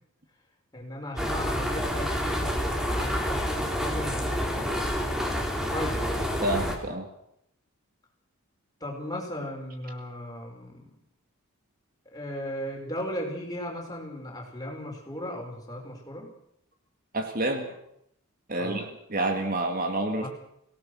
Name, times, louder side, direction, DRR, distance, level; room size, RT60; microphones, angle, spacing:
voice 1, 0.7-4.9 5.7-6.0 8.8-10.9 12.1-16.3 18.5-18.8 20.2-20.3, equal, 15° left, 0 dB, 5.1 m, -36 dB
sound 1, 1.2-6.8, equal, ahead, 2.8 m, -28 dB
voice 2, 6.4-7.1 17.1-17.7 18.5-20.3, right 1 dB, 40° right, 4 dB, 2.1 m, -28 dB
24.5 x 17.5 x 6.3 m, 0.76 s
head